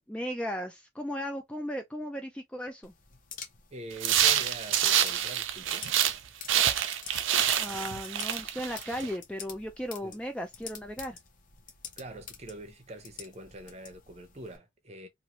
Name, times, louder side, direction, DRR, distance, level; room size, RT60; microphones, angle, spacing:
voice 1, 0.0-2.9 7.6-11.2, equal, 5° left, 0.3 m, -36 dB
sound 1, 2.8-14.6, left 7 dB, 40° left, 0.7 m, -48 dB
voice 2, 3.7-5.9 10.0-10.2 12.0-15.1, right 2 dB, 35° right, 0.7 m, -44 dB
sound 2, 4.0-6.2 6.5-9.1, right 10 dB, 75° right, 0.5 m, -27 dB
2.7 x 2.5 x 3.0 m
head